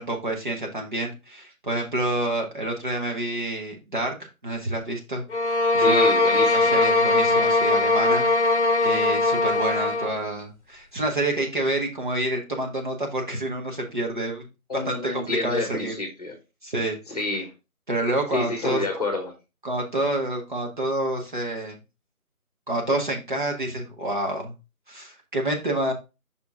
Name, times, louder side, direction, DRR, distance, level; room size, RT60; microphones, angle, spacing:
voice 1, 0.0-5.2 5.7-6.2 6.5-14.5 14.7-15.9 16.6-17.0 17.9-18.8 19.6-21.8 22.7-24.5 24.9-25.9, right 1 dB, 35° right, 1 dB, 1.1 m, -28 dB
sound 1, 5.3-10.2, left 2 dB, 50° left, 0.9 m, -20 dB
voice 2, 5.8-6.8 14.7-16.4 17.1-17.5 18.3-19.3, left 2 dB, 25° left, 4 dB, 1.4 m, -29 dB
5.7 x 4.7 x 3.9 m, 0.27 s
figure-of-eight pair, 155°, 43 cm